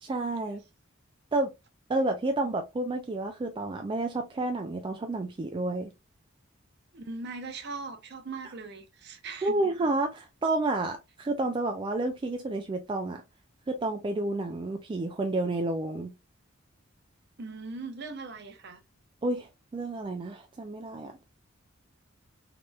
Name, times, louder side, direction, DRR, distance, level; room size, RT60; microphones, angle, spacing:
voice 1, 0.0-0.6 1.3-1.5 1.9-5.9 9.4-13.2 13.7-16.1 19.2-21.2, right 2 dB, 25° right, 0.3 m, -30 dB
voice 2, 6.9-9.7 17.4-18.8, right 3 dB, 55° right, 0.6 m, -40 dB
3.1 x 2.9 x 2.2 m
head